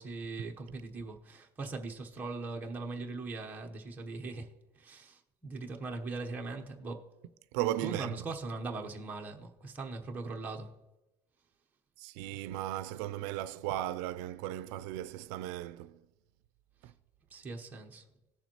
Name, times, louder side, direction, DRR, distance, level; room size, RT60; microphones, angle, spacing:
voice 1, 0.0-7.4 7.8-10.7 17.3-18.0, right 3 dB, 15° right, 0.9 m, -40 dB
voice 2, 7.5-8.1 12.0-16.0, right 14 dB, 80° right, 0.4 m, -36 dB
18.0 x 7.0 x 3.0 m
cardioid pair, 175°, 13 cm